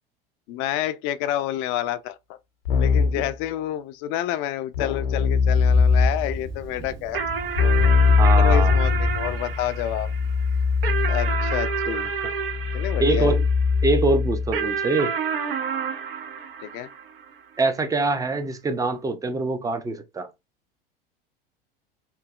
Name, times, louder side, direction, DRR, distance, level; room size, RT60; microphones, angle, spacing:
voice 1, 0.5-2.4 2.8-7.2 8.4-10.1 11.1-12.1 12.7-13.3 16.6-16.9, left 12 dB, 45° left, 0.4 m, -29 dB
Keyboard (musical), 2.7-3.3 4.7-6.3 7.6-14.6, left 5 dB, 75° left, 0.7 m, -21 dB
Thunder, 5.5-11.2, left 1 dB, 50° right, 1.3 m, -34 dB
sound 1, 7.1-13.8 14.5-17.3, right 6 dB, 70° right, 0.8 m, -30 dB
voice 2, 8.2-8.7 11.9-12.0 13.0-13.4 13.8-15.1 17.6-20.3, right 3 dB, 10° right, 0.5 m, -24 dB
3.0 x 2.6 x 2.4 m
figure-of-eight pair, 80°, 29 cm